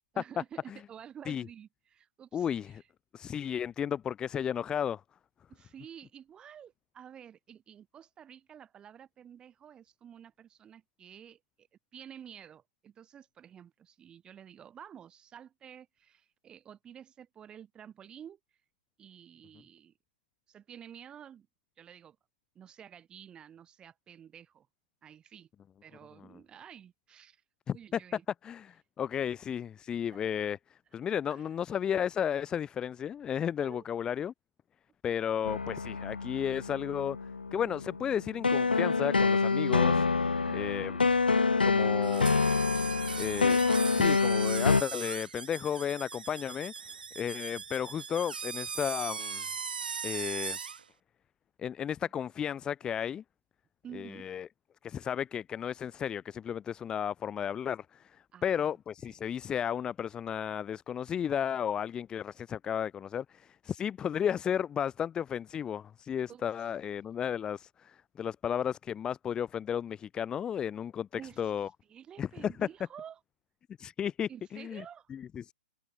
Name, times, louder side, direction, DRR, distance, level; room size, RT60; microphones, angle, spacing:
voice 1, 0.1-2.9 3.3-3.5 5.5-11.7 11.9-18.4 19.0-19.9 20.5-21.5 21.8-22.2 22.5-24.7 25.0-25.5 25.8-27.4 27.7-28.2 30.1-30.5 31.3-31.5 33.6-33.9 40.4-41.0 41.7-42.1 52.0-52.1 53.8-54.3 58.3-58.7 59.0-59.2 66.3-66.7 71.1-73.2 74.3-75.1, right 9 dB, 20° right, 3.1 m, -51 dB
voice 2, 2.3-2.8 3.1-5.0 27.7-28.0 28.4-34.3 35.0-37.2 37.5-40.2 40.5-41.0 41.6-42.3 43.2-43.6 43.9-49.4 50.0-50.6 51.6-53.2 53.9-54.5 54.8-71.7 72.2-72.7 73.8-74.8 75.1-75.5, left 8 dB, 15° left, 0.8 m, -33 dB
sound 1, 35.4-44.8, left 4 dB, 85° left, 0.4 m, -27 dB
sound 2, 42.0-50.8, right 6 dB, 75° right, 0.9 m, -39 dB
figure-of-eight pair, 120°, 5 cm